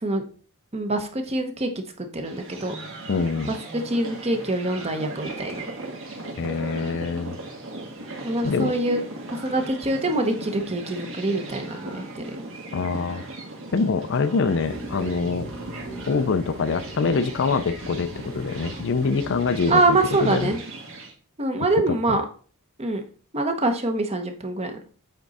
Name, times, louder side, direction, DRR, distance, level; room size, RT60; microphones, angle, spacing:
voice 1, 0.7-2.7 3.5-3.6 3.8-5.7 8.2-9.0 9.3-12.4 19.7-20.6 21.4-22.2 22.8-23.0 23.3-24.9, right 2 dB, 30° right, 5 dB, 0.9 m, -25 dB
sound 1, 2.2-21.1, right 2 dB, 60° right, 1.8 m, -38 dB
voice 2, 3.1-3.5 6.4-7.4 8.4-8.8 12.7-13.2 13.7-15.5 16.1-20.5 21.9-22.2, left 4 dB, 55° left, 12 dB, 0.5 m, -25 dB
sound 2, 14.6-19.7, right 1 dB, 45° right, 1.5 m, -39 dB
8.0 x 3.7 x 4.1 m, 0.41 s
head